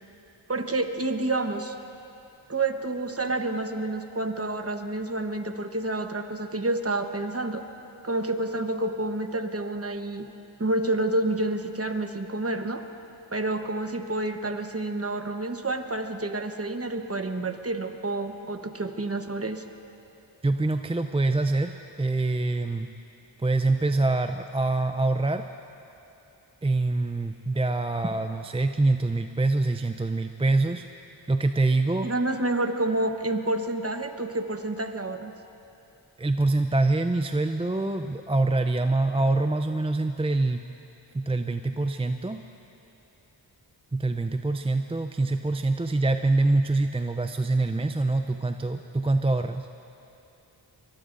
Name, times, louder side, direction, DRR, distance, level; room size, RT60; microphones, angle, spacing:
voice 1, 0.5-1.7 2.5-7.6 8.0-10.3 10.6-12.8 13.3-19.6 32.0-35.3, right 2 dB, 30° right, 6 dB, 1.1 m, -29 dB
voice 2, 20.4-22.9 23.4-25.4 26.6-30.8 31.3-32.1 36.2-40.6 41.1-42.4 43.9-49.7, right 2 dB, 15° right, 7 dB, 0.4 m, -25 dB
23.5 x 23.0 x 2.6 m, 2.9 s
cardioid pair, 45°, 46 cm